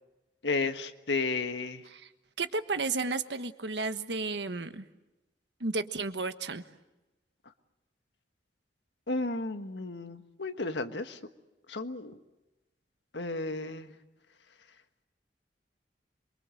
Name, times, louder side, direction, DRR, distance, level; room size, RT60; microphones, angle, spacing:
voice 1, 0.4-1.8 9.1-11.2 11.7-12.2 13.1-13.9, left 3 dB, 90° left, 8 dB, 1.5 m, -33 dB
voice 2, 2.4-4.9 5.6-6.6, right 3 dB, 80° right, 10 dB, 1.3 m, -33 dB
27.0 x 24.0 x 7.7 m, 1.0 s
head